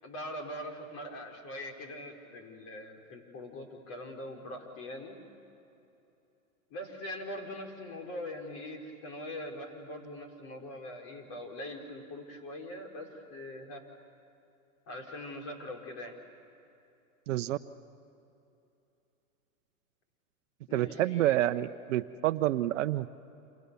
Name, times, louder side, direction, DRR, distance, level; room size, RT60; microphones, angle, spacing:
voice 1, 0.0-5.2 6.7-13.8 14.9-16.2 20.7-21.4, left 1 dB, 35° left, 2 dB, 4.8 m, -42 dB
voice 2, 17.3-17.6 20.7-23.1, right 14 dB, 60° right, 11 dB, 0.9 m, -28 dB
29.5 x 28.0 x 7.0 m, 2.8 s
hypercardioid pair, 130°, 42 cm